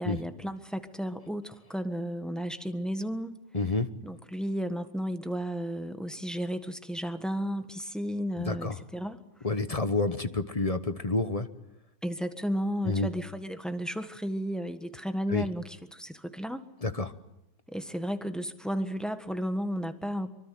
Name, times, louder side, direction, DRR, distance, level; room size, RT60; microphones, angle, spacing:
voice 1, 0.0-3.4 4.0-9.2 12.0-16.6 17.7-20.3, equal, ahead, 8 dB, 1.3 m, -33 dB
voice 2, 3.5-3.9 8.4-8.8 9.4-11.5 12.8-13.1 15.3-15.4 16.8-17.1, left 3 dB, 25° left, 11 dB, 0.9 m, -29 dB
25.5 x 24.0 x 9.3 m, 0.88 s
omnidirectional pair, 1.9 m